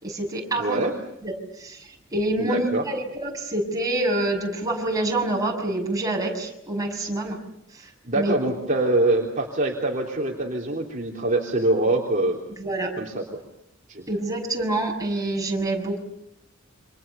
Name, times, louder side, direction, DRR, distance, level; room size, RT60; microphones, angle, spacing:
voice 1, 0.0-0.8 1.2-1.3 1.6-7.4 7.8-8.4 12.6-12.9 14.1-16.0, right 1 dB, 20° right, 0 dB, 6.6 m, -27 dB
voice 2, 0.6-0.9 2.4-2.9 8.0-12.4 13.0-13.2 13.9-14.2, right 2 dB, 40° right, -2 dB, 3.5 m, -24 dB
29.5 x 26.5 x 7.0 m, 0.81 s
head